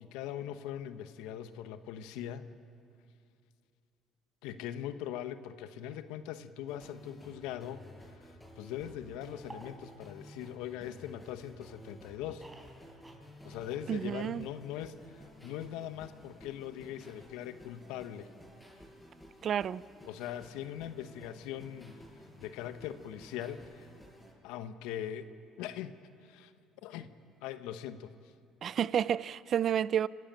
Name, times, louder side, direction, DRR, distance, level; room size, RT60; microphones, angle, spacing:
voice 1, 0.0-2.5 4.4-12.5 13.4-18.3 20.1-22.0 22.4-23.9 24.4-25.3 25.6-26.5 26.8-27.1 27.4-28.1, left 10 dB, 85° left, 1.0 m, -41 dB
sound 1, 6.7-24.3, equal, 5° left, 7.1 m, -54 dB
sound 2, 9.3-11.4 11.8-14.5 14.7-14.8 15.0-15.1, right 1 dB, 15° right, 4.3 m, -55 dB
voice 2, 13.9-14.4 19.4-19.8 28.6-30.1, right 9 dB, 55° right, 0.4 m, -30 dB
29.0 x 13.0 x 8.9 m
supercardioid pair, 85°, 0 cm